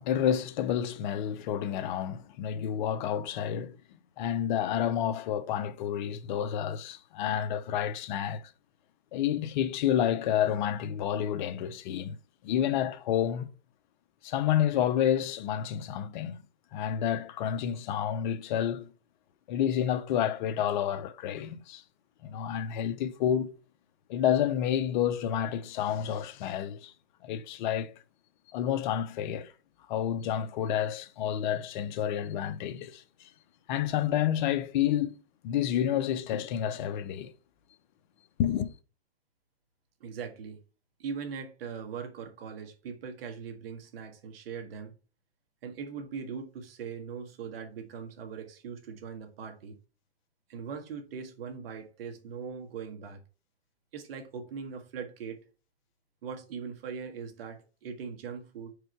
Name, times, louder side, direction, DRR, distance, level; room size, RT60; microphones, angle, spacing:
voice 1, 0.0-3.8 4.2-8.5 9.1-12.2 12.4-13.5 14.2-16.4 16.7-18.9 19.5-21.8 22.2-23.5 24.1-26.9 27.2-27.9 28.5-29.5 29.9-33.3 33.7-35.1 35.4-37.3 38.4-38.7, left 10 dB, 45° left, 0.8 m, -29 dB
voice 2, 40.0-40.6 41.0-44.9 45.6-49.8 50.5-53.2 53.9-55.4 56.2-58.7, right 6 dB, 60° right, 1.8 m, -40 dB
5.0 x 4.6 x 4.5 m
hypercardioid pair, 140°, 33 cm